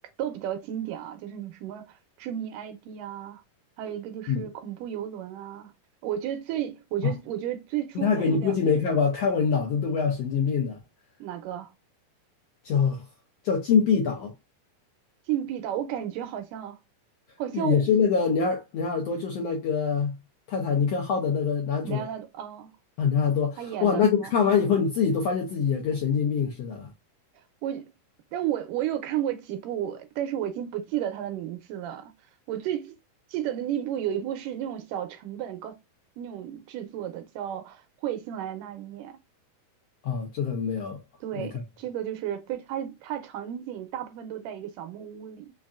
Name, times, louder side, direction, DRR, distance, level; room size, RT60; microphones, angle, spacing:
voice 1, 0.2-3.4 3.8-5.7 6.0-8.6 11.2-11.7 15.3-16.8 17.4-17.9 21.8-22.7 23.6-24.3 27.6-27.9 28.3-32.1 32.5-33.0 33.3-35.8 36.2-39.2 41.2-45.5, right 11 dB, 80° right, 2.3 m, -33 dB
voice 2, 7.9-10.8 12.6-13.0 13.4-14.3 17.5-20.2 20.5-22.1 23.0-26.9 40.0-41.0 41.3-41.5, left 6 dB, 75° left, 1.5 m, -24 dB
5.5 x 2.5 x 2.3 m
omnidirectional pair, 3.7 m